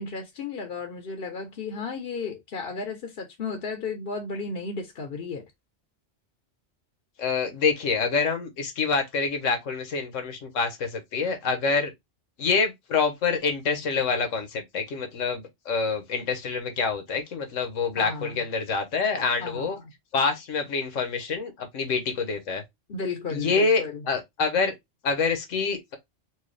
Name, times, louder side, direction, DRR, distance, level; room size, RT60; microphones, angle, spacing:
voice 1, 0.0-5.4 18.0-18.5 19.4-19.9 22.9-24.1, left 4 dB, 55° left, 0.9 m, -34 dB
voice 2, 7.2-11.9 12.4-19.8 20.1-22.6 23.3-24.7 25.0-26.0, left 4 dB, 80° left, 1.4 m, -26 dB
4.5 x 2.4 x 3.2 m
omnidirectional pair, 1.3 m